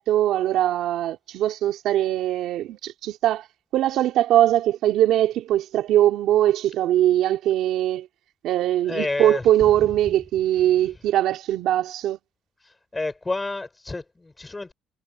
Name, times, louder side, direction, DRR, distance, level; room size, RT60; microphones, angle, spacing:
voice 1, 0.0-3.5 3.7-8.1 8.4-12.2, right 12 dB, 70° right, 2.5 m, -21 dB
voice 2, 8.9-9.5 10.6-10.8 12.6-14.7, left 2 dB, 15° left, 6.2 m, -30 dB
cardioid pair, 140°, 0 cm